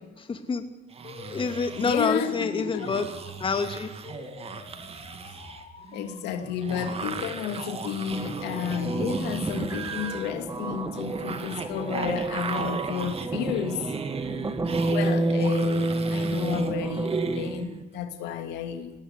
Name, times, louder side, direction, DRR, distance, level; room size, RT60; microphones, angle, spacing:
voice 1, 0.3-0.6 1.3-3.1 3.4-3.9, left 4 dB, 30° left, 2.5 m, -27 dB
sound 1, 0.9-17.8, right 5 dB, 35° right, 2.5 m, -37 dB
sound 2, 1.0-13.0, left 5 dB, 45° left, 4.5 m, -49 dB
voice 2, 1.8-3.0 5.3-5.4 5.9-13.9 14.9-18.9, left 8 dB, 90° left, 2.7 m, -32 dB
sound 3, 8.1-17.6, right 2 dB, 20° right, 1.4 m, -29 dB
19.5 x 18.0 x 9.8 m
cardioid pair, 110°, 17 cm